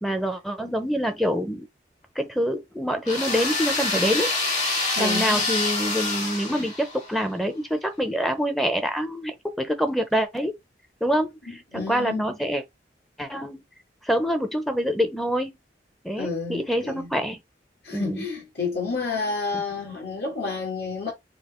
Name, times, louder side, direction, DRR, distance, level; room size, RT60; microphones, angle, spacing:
voice 1, 0.0-1.7 2.2-4.3 5.0-10.5 11.0-12.6 13.2-13.6 14.0-15.5 16.0-17.4 17.9-18.2, equal, ahead, 0.7 m, -26 dB
sound 1, 3.0-7.2, left 2 dB, 40° left, 2.2 m, -26 dB
voice 2, 4.9-5.4 11.5-12.3 16.2-17.1 17.8-21.1, left 4 dB, 60° left, 2.1 m, -30 dB
5.2 x 2.2 x 4.3 m
head